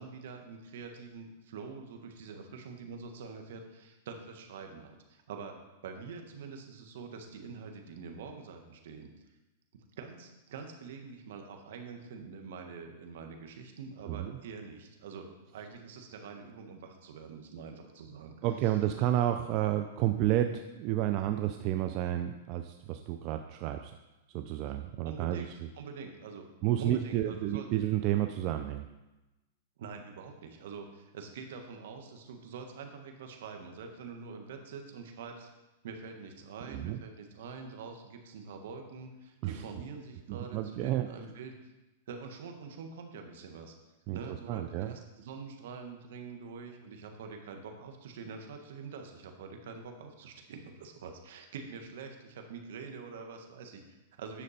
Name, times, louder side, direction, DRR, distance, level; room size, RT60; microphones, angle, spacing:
voice 1, 0.0-5.6 5.8-9.1 10.0-18.3 18.6-18.7 25.0-26.5 26.8-27.7 29.8-35.5 35.8-41.7 42.1-43.7 44.1-54.4, right 5 dB, 70° right, 4 dB, 1.5 m, -45 dB
voice 2, 18.4-23.9 24.3-25.5 26.6-28.9 36.7-37.0 39.4-39.6 40.3-41.1 44.1-44.9, right 12 dB, 40° right, 7 dB, 0.4 m, -31 dB
9.9 x 6.4 x 4.3 m, 1.1 s
hypercardioid pair, 140°, 0 cm